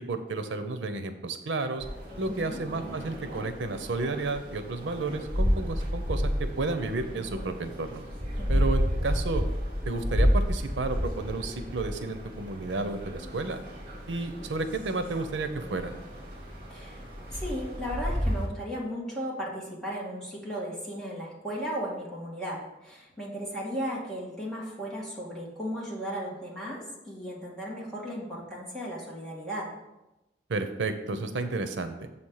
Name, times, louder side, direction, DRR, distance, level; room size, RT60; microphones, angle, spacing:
voice 1, 0.0-1.8 2.2-8.0 8.5-9.5 9.9-13.6 14.1-15.9 30.5-32.1, right 3 dB, 90° right, 9 dB, 0.7 m, -32 dB
sound 1, 1.8-18.5, equal, 25° right, 2.5 m, -31 dB
voice 2, 2.3-2.6 8.4-8.7 16.7-17.0 17.3-29.7, equal, 5° left, -6 dB, 2.0 m, -36 dB
7.1 x 4.3 x 6.4 m, 0.98 s
head